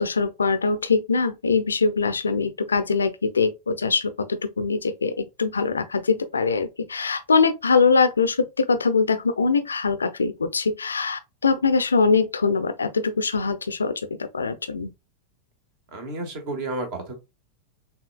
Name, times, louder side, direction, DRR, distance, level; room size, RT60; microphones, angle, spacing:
voice 1, 0.0-13.9 14.3-14.9, left 4 dB, 75° left, 0.4 m, -22 dB
voice 2, 15.9-17.1, right 2 dB, 45° right, 1.5 m, -31 dB
6.3 x 2.3 x 2.2 m
figure-of-eight pair, 90°, 0 cm